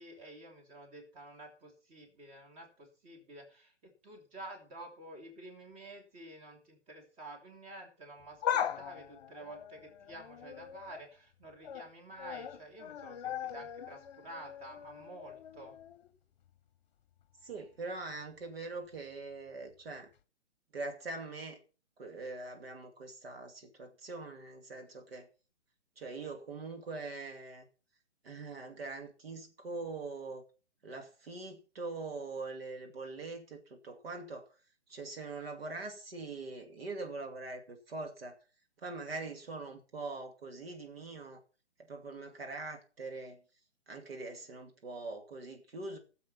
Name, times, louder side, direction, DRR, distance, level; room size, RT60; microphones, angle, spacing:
voice 1, 0.0-15.8, right 2 dB, 20° right, 3 dB, 2.9 m, -50 dB
sound 1, 8.2-11.0 11.4-11.9 12.2-16.1 16.5-16.6 17.6-17.7, left 9 dB, 35° left, 1.1 m, -39 dB
voice 2, 17.4-20.1 20.7-21.6 22.0-25.3 26.0-27.7 28.2-30.4 30.8-34.5 34.9-38.4 38.8-41.4 41.8-43.4 43.9-46.0, right 3 dB, 55° right, 5 dB, 2.5 m, -43 dB
14.5 x 7.5 x 5.7 m, 0.37 s
figure-of-eight pair, 135°, 35 cm